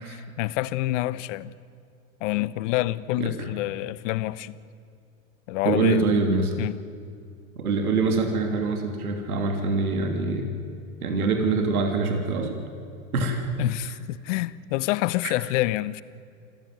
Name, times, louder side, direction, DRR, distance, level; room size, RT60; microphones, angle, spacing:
voice 1, 0.0-1.5 2.2-4.5 5.5-6.0 6.6-6.8 13.6-16.0, left 16 dB, 60° left, 1.1 m, -27 dB
voice 2, 5.6-6.5 7.6-10.5 11.0-12.6 13.1-13.4 15.2-15.3, right 3 dB, 85° right, 3.1 m, -24 dB
26.5 x 15.0 x 9.6 m
hypercardioid pair, 105°, 43 cm